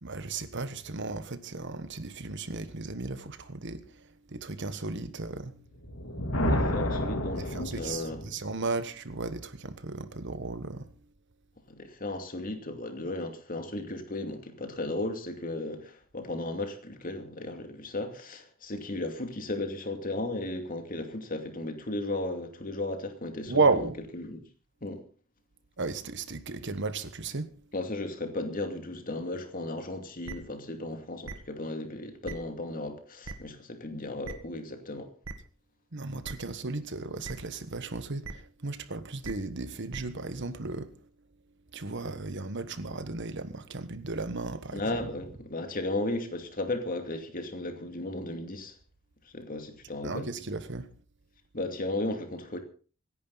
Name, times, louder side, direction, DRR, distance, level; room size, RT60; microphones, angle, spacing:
voice 1, 0.0-5.6 7.5-10.9 23.5-24.0 25.8-27.5 35.9-41.1 41.7-45.0 50.0-50.9, right 3 dB, 60° right, 1.3 m, -34 dB
Thunder, 5.7-8.4, equal, 75° left, 3.2 m, -30 dB
voice 2, 6.5-8.3 11.7-23.7 24.2-24.4 24.8-25.0 27.7-35.1 44.7-48.8 49.3-50.3 51.5-52.6, left 2 dB, 40° left, 2.6 m, -35 dB
sound 1, 30.2-30.3 31.2-31.3 32.2-32.3 33.2-33.3 34.2-34.3 35.2-35.3 36.2-36.3 37.2-37.3 38.2-38.3 39.2-39.3 39.9-40.0, right 3 dB, 75° right, 1.8 m, -38 dB
26.5 x 10.5 x 4.1 m
head